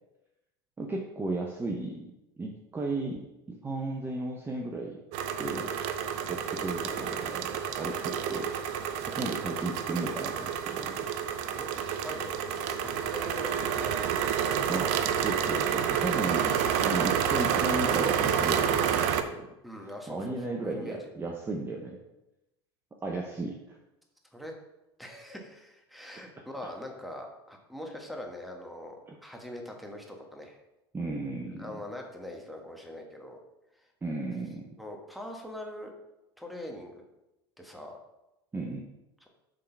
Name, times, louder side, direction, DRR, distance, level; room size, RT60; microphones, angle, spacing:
voice 1, 0.8-2.1 2.4-5.0 5.4-5.7 6.3-7.5 7.8-8.5 9.1-11.0 14.7-14.9 15.2-16.5 16.8-19.5 20.1-22.0 23.0-23.8 29.1-29.2 30.9-31.8 34.0-34.7 38.5-38.9, right 2 dB, 15° right, 1 dB, 0.7 m, -34 dB
sound 1, 5.1-19.2, right 8 dB, 60° right, 0.6 m, -29 dB
voice 2, 11.5-14.1 19.6-21.1 24.3-24.5 25.0-30.6 31.6-33.4 33.8-33.9 34.8-35.9 36.4-36.9 37.6-38.0, left 1 dB, ahead, 2 dB, 1.3 m, -42 dB
6.5 x 3.7 x 4.5 m, 0.94 s
hypercardioid pair, 95°, 13 cm